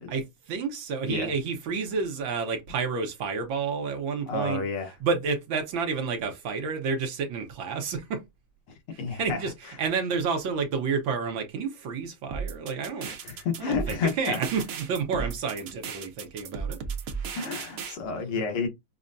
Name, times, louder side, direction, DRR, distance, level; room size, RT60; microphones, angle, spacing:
voice 1, 0.1-4.6 5.0-8.2 8.9-13.1 13.6-16.8, right 5 dB, 70° right, 1.5 m, -30 dB
voice 2, 4.3-4.9 9.0-9.4 13.0-14.4 15.2-15.3 17.3-18.7, left 5 dB, 90° left, 2.1 m, -30 dB
sound 1, 12.3-17.9, right 6 dB, 85° right, 0.7 m, -35 dB
5.8 x 2.1 x 2.5 m
omnidirectional pair, 2.4 m